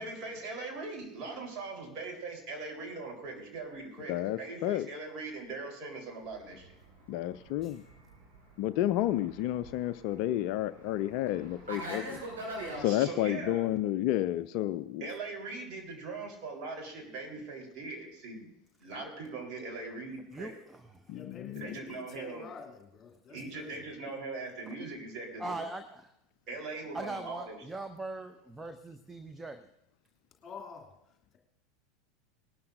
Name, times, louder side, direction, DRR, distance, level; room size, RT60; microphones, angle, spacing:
voice 1, 0.0-6.8 12.8-13.7 15.0-18.5 18.8-20.6 21.5-22.5 23.3-25.6 26.5-27.6, right 3 dB, 40° right, 1 dB, 4.0 m, -41 dB
voice 2, 4.1-4.9 7.1-7.8 8.6-12.2 12.8-15.0 21.1-21.7, left 14 dB, 50° left, 15 dB, 0.4 m, -31 dB
Fixed-wing aircraft airplane, 6.3-12.9, right 1 dB, 70° right, 5.5 m, -43 dB
voice 3, 20.3-21.0 24.7-24.8 25.4-26.1 26.9-29.7, right 2 dB, 10° right, 8 dB, 0.7 m, -41 dB
voice 4, 21.1-23.7 30.4-30.9, left 6 dB, 25° left, 1 dB, 2.7 m, -48 dB
19.5 x 12.5 x 2.6 m, 0.81 s
figure-of-eight pair, 80°, 0 cm